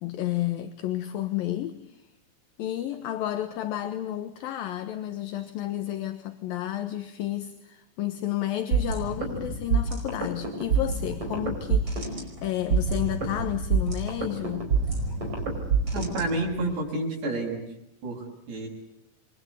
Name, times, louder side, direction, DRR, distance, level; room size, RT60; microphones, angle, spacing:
voice 1, 0.0-2.0 2.6-14.7, left 13 dB, 65° left, 8 dB, 2.6 m, -31 dB
sound 1, 8.7-16.7, right 5 dB, 30° right, 5.8 m, -27 dB
voice 2, 15.9-17.6 18.0-18.7, right 2 dB, 70° right, 1 dB, 8.8 m, -29 dB
30.0 x 23.5 x 8.2 m, 0.84 s
omnidirectional pair, 5.0 m